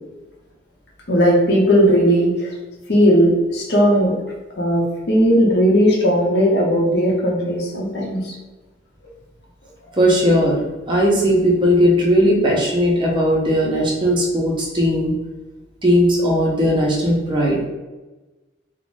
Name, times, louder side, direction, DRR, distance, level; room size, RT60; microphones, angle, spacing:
voice 1, 1.1-2.5 2.9-4.1 4.6-8.3, equal, 60° left, -3 dB, 0.7 m, -16 dB
voice 2, 10.0-15.1 15.8-17.6, equal, 25° right, -2 dB, 0.5 m, -17 dB
2.5 x 2.1 x 3.1 m, 1.1 s
head